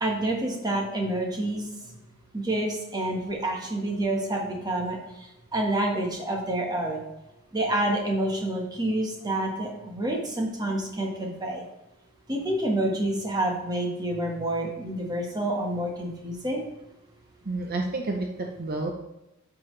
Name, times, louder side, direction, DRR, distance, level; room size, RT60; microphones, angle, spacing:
voice 1, 0.0-1.7 2.3-7.0 7.5-11.6 12.3-16.7, right 1 dB, 20° right, 0 dB, 1.4 m, -28 dB
voice 2, 17.4-18.9, right 2 dB, 45° right, 1 dB, 0.7 m, -30 dB
8.5 x 6.1 x 3.3 m, 0.94 s
head